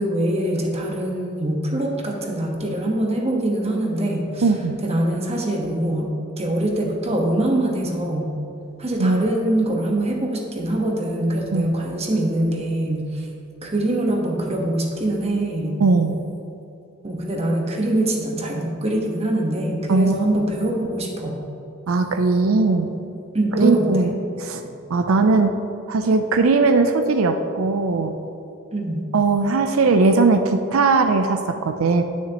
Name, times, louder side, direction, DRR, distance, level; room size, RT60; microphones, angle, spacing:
voice 1, 0.0-4.4 4.8-6.1 6.4-8.3 8.8-13.3 13.6-15.8 17.0-21.4 23.3-24.1 28.7-29.1, right 1 dB, 30° right, 0 dB, 1.2 m, -23 dB
voice 2, 4.4-4.8 9.0-9.2 11.5-11.7 15.8-16.2 19.9-20.3 21.9-22.9 23.6-24.1 24.4-24.6 24.9-25.5 25.9-28.1 29.1-32.0, right 3 dB, 90° right, 7 dB, 0.5 m, -19 dB
10.0 x 9.4 x 2.9 m, 2.7 s
head